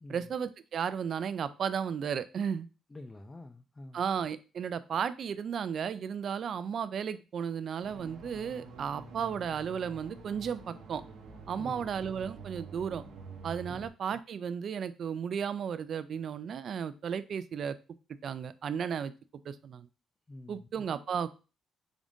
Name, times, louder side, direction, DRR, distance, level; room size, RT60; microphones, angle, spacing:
voice 1, 0.1-2.7 3.9-11.0 11.5-13.0 13.4-17.8 18.2-19.1 19.5-19.9 20.5-21.3, right 7 dB, 60° right, 0.3 m, -34 dB
voice 2, 2.9-4.0 11.6-11.9 13.7-13.9 20.3-20.7, left 2 dB, 20° left, 0.3 m, -47 dB
sound 1, 7.8-13.9, right 4 dB, 85° right, 0.8 m, -47 dB
3.6 x 2.6 x 3.6 m
cardioid pair, 90°, 0 cm